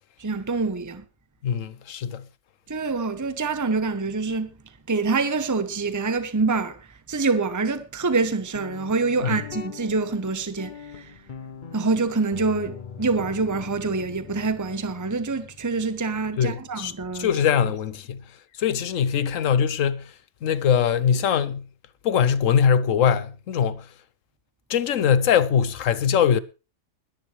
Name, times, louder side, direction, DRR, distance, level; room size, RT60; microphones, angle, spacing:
voice 1, 0.2-1.0 2.7-4.6 4.9-11.2 11.7-17.3, right 4 dB, 15° right, 0.9 m, -26 dB
voice 2, 1.4-2.2 9.2-9.4 16.4-18.2 18.6-20.1 20.4-21.7 22.0-23.9 24.7-26.4, left 8 dB, 85° left, 1.2 m, -22 dB
Guitar, 8.5-18.0, left 7 dB, 45° left, 0.8 m, -43 dB
21.0 x 10.5 x 3.2 m
omnidirectional pair, 1.3 m